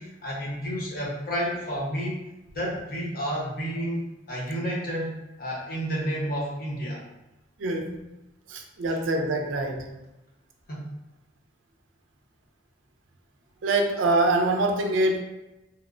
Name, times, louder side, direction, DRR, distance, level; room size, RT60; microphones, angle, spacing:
voice 1, 0.0-2.2 2.5-4.0 4.3-7.0 10.7-10.9, equal, 50° left, -4 dB, 0.8 m, -30 dB
voice 2, 7.6-8.1 8.5-10.0 13.6-15.2, right 2 dB, 85° right, 3 dB, 0.4 m, -24 dB
2.9 x 2.0 x 2.4 m, 0.96 s
head